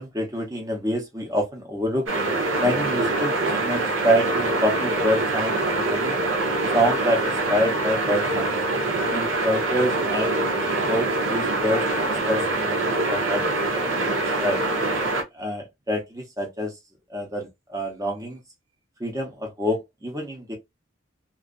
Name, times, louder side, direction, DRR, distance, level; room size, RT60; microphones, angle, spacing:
voice 1, 0.0-2.1 2.6-6.2 6.7-8.5 9.1-10.4 10.9-13.4 13.7-14.6 15.3-16.7 17.1-18.4 19.0-20.6, equal, 15° right, 0.8 m, -27 dB
sound 1, 2.1-15.2, right 2 dB, 75° right, 0.7 m, -24 dB
2.5 x 2.3 x 2.3 m
head